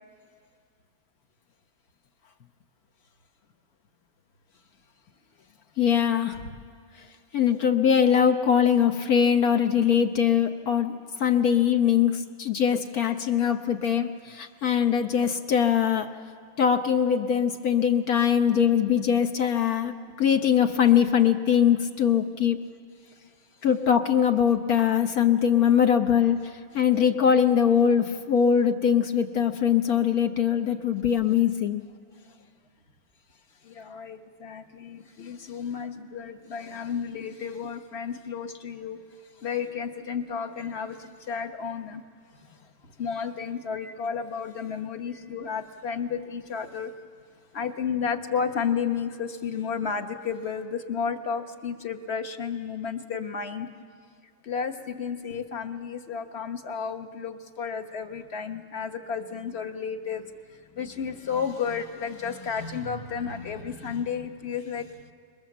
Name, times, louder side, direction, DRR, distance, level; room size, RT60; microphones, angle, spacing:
voice 1, 5.8-6.4 7.3-16.1 16.6-22.6 23.6-31.8, left 8 dB, 60° left, 6 dB, 1.4 m, -22 dB
voice 2, 33.6-39.1 39.4-42.0 42.4-47.0 47.5-53.7 54.4-65.1, left 6 dB, 40° left, 7 dB, 1.3 m, -32 dB
26.5 x 22.0 x 7.4 m, 2.1 s
omnidirectional pair, 1.8 m